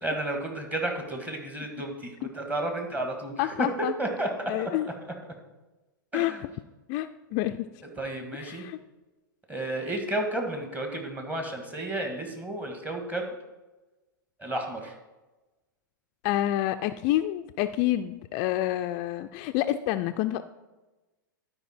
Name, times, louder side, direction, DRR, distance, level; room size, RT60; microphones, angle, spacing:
voice 1, 0.0-3.7 4.0-4.3 4.6-4.7 6.1-6.4 8.0-8.6 9.5-13.3 14.4-14.9, right 1 dB, 15° right, 2 dB, 1.7 m, -32 dB
voice 2, 3.4-3.9 4.5-4.9 6.1-6.3 6.9-7.6 8.4-8.8 16.2-20.4, left 14 dB, 45° left, 9 dB, 0.3 m, -28 dB
12.0 x 5.0 x 4.4 m, 1.1 s
hypercardioid pair, 110°, 11 cm